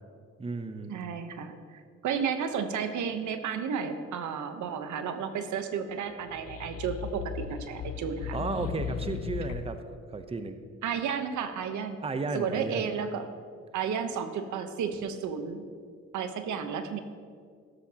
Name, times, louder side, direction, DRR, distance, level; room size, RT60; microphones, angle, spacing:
voice 1, 0.4-1.0 8.3-9.8 10.1-10.6 12.0-12.9, right 3 dB, 20° right, 8 dB, 0.7 m, -33 dB
voice 2, 0.9-8.4 10.8-12.0 12.3-13.3 13.7-15.6 16.1-17.0, right 7 dB, 75° right, 8 dB, 1.0 m, -32 dB
sound 1, 6.2-9.9, left 8 dB, 55° left, 0.4 m, -37 dB
13.0 x 11.5 x 2.9 m, 2.1 s
cardioid pair, 90°, 30 cm